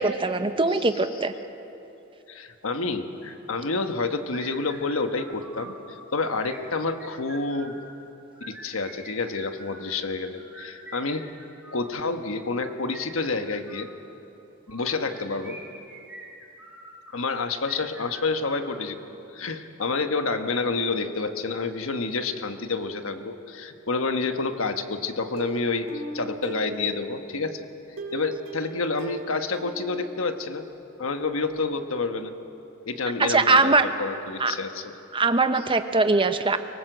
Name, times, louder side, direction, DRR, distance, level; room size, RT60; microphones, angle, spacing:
voice 1, 0.0-1.3 33.2-33.9 34.4-34.5 35.1-36.6, right 3 dB, 25° right, 9 dB, 0.9 m, -21 dB
voice 2, 2.3-7.8 8.5-11.3 11.7-13.9 14.7-15.6 17.1-19.0 19.3-30.7 31.0-32.3 32.8-34.9, left 3 dB, 80° left, 7 dB, 1.3 m, -29 dB
sound 1, 4.3-5.8 6.4-7.8 8.3-9.9 10.4-11.9 12.5-13.9 14.7-17.0 17.6-19.0, right 2 dB, 10° right, 4.0 m, -45 dB
Plucked string instrument, 25.4-27.3 28.0-30.8 31.1-31.2 31.5-31.6, right 2 dB, 65° right, 3.9 m, -38 dB
23.5 x 19.0 x 8.0 m, 2.9 s
head